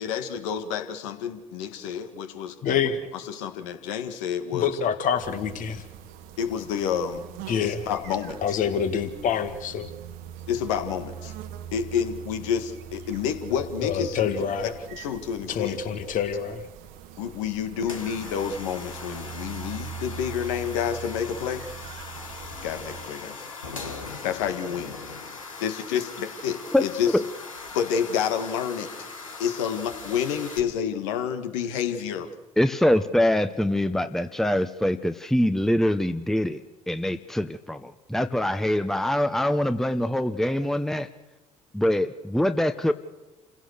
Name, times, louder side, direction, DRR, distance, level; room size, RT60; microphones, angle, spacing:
voice 1, 0.0-2.8 3.1-4.7 6.4-7.2 7.6-8.6 10.5-11.3 11.7-14.2 14.9-15.8 17.2-21.7 22.6-23.4 24.2-25.0 25.6-27.1 27.7-28.9 29.4-32.3, left 8 dB, 70° left, 8 dB, 1.9 m, -29 dB
voice 2, 2.6-3.1 4.5-5.8 7.5-7.8 8.4-9.9 13.8-14.7 15.5-16.6, left 7 dB, 55° left, 9 dB, 2.1 m, -26 dB
sound 1, 5.2-23.1, right 9 dB, 65° right, 1.4 m, -42 dB
sound 2, 17.8-30.6, left 4 dB, 90° left, 1.8 m, -40 dB
voice 3, 32.6-36.6 36.9-41.1 41.7-42.9, left 1 dB, ahead, 10 dB, 1.0 m, -24 dB
28.5 x 16.5 x 6.7 m, 1.2 s
figure-of-eight pair, 55°, 17 cm